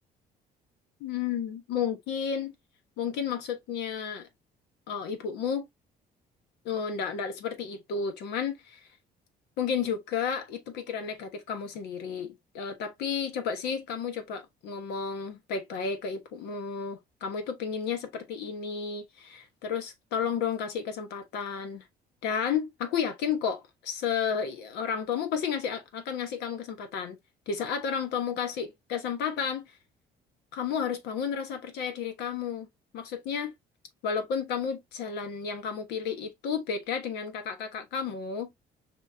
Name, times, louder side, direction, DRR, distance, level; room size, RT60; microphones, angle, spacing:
voice 1, 1.0-2.5 3.0-4.3 4.9-5.7 6.6-8.8 9.6-21.8 22.2-27.2 27.5-29.7 30.5-32.7 32.9-33.5 34.0-38.5, left 7 dB, 85° left, 1.3 m, -32 dB
5.1 x 3.6 x 2.7 m
cardioid pair, 110°, 17 cm